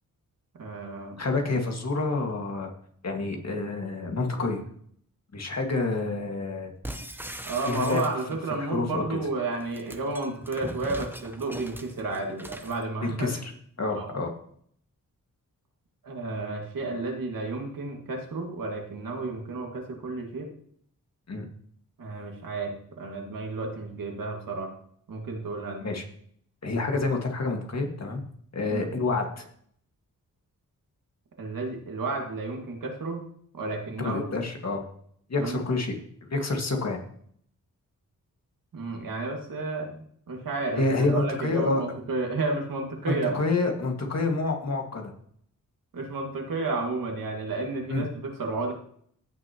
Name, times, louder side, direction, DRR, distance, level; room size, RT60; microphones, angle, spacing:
voice 1, 0.5-1.2 7.5-13.3 13.9-14.1 16.0-20.5 22.0-24.7 25.1-25.9 28.7-28.9 31.4-33.2 33.5-34.3 35.4-35.6 38.7-43.4 45.9-48.7, right 3 dB, 80° right, 2 dB, 2.1 m, -32 dB
voice 2, 1.2-2.7 3.0-4.6 5.3-6.7 7.7-8.0 8.6-9.2 13.0-13.5 13.8-14.3 21.3-21.5 25.8-26.0 26.6-28.2 28.5-29.4 34.0-34.8 35.3-35.9 36.3-37.0 40.8-41.8 43.1-45.0 47.9-48.0, left 3 dB, 50° left, 2 dB, 2.0 m, -28 dB
sound 1, 6.8-8.5 9.5-12.8, right 1 dB, 5° right, 0.9 m, -40 dB
15.5 x 6.4 x 3.0 m, 0.62 s
cardioid pair, 70°, 33 cm